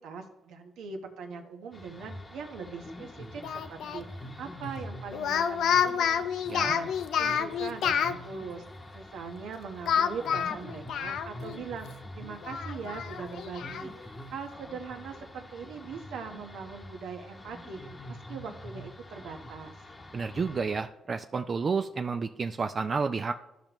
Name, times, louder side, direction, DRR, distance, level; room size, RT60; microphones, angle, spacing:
voice 1, 0.0-6.3 6.6-8.6 8.9-19.7, right 5 dB, 85° right, 4 dB, 1.1 m, -41 dB
sound 1, 1.7-20.9, left 1 dB, 20° left, 0.9 m, -45 dB
Speech, 3.4-4.0 5.1-8.2 9.9-11.6 11.9-12.0 12.4-13.9, left 8 dB, 75° left, 0.5 m, -28 dB
voice 2, 20.1-23.3, right 5 dB, 40° right, 7 dB, 0.4 m, -30 dB
14.0 x 5.1 x 3.0 m, 0.95 s
cardioid pair, 90°, 0 cm